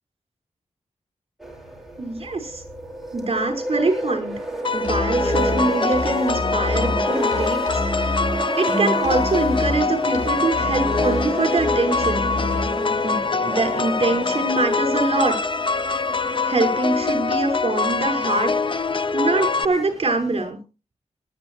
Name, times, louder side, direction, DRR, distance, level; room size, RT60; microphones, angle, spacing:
sound 1, 1.4-20.5, right 2 dB, ahead, 5.0 m, -31 dB
voice 1, 2.0-2.6 3.1-4.3 4.7-8.2 8.6-12.6 13.0-15.4 16.2-18.9 19.1-20.6, right 3 dB, 50° right, 3 dB, 5.6 m, -24 dB
sound 2, 4.6-19.6, left 4 dB, 40° left, 0.7 m, -24 dB
Musical instrument, 4.8-12.7, left 2 dB, 80° left, 5.6 m, -29 dB
19.0 x 12.5 x 3.2 m, 0.31 s
wide cardioid pair, 85°, 13 cm